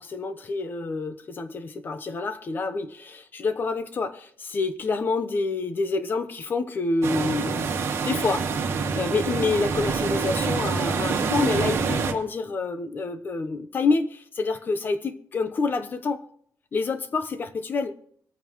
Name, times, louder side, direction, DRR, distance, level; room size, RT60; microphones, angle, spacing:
voice 1, 0.0-7.7 8.0-8.5 8.9-16.2 16.7-17.9, left 3 dB, 30° left, 0.9 m, -27 dB
sound 1, 7.0-12.1, right 5 dB, 45° right, 2.1 m, -26 dB
24.5 x 9.1 x 3.1 m
cardioid pair, 175°, 6 cm